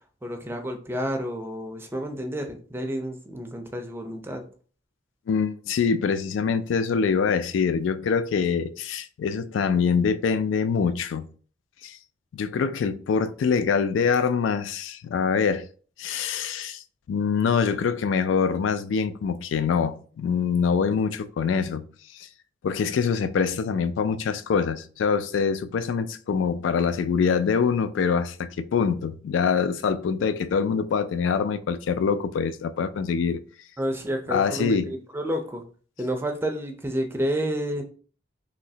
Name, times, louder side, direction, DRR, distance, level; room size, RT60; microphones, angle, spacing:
voice 1, 0.2-4.4 33.8-35.6 36.0-37.8, equal, 15° right, 0.4 m, -30 dB
voice 2, 5.3-11.3 11.8-12.0 12.3-15.7 16.0-16.8 17.1-21.8 22.1-22.3 22.6-33.4 34.3-34.9, left 6 dB, 90° left, 0.3 m, -24 dB
3.1 x 2.8 x 2.7 m
head